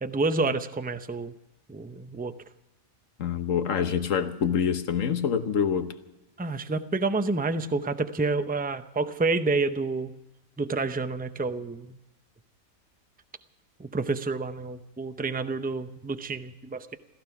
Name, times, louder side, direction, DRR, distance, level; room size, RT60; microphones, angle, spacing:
voice 1, 0.0-1.3 1.7-2.3 6.4-10.1 10.6-12.0 13.8-17.0, right 3 dB, 15° right, 10 dB, 0.3 m, -29 dB
voice 2, 3.2-5.9, left 7 dB, 65° left, 10 dB, 1.4 m, -26 dB
15.5 x 14.5 x 5.9 m, 0.96 s
omnidirectional pair, 1.4 m